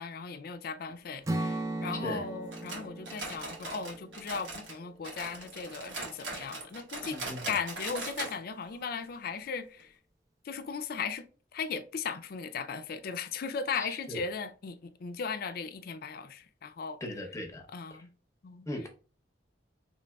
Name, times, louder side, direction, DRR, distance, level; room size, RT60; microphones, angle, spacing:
voice 1, 0.0-7.2 7.5-9.9 10.4-11.2 11.5-17.0 17.7-18.1 18.4-18.7, left 5 dB, 55° left, 0.4 m, -37 dB
Strum, 1.2-5.4, right 1 dB, 20° right, 0.4 m, -38 dB
sound 1, 2.5-4.8 5.0-8.4 8.6-8.7 9.1-9.2 9.8-9.9, right 2 dB, 85° right, 1.2 m, -40 dB
voice 2, 7.1-7.5 13.8-14.2 17.0-17.6 18.7-18.9, left 1 dB, 15° left, 0.7 m, -38 dB
4.0 x 3.1 x 2.2 m
head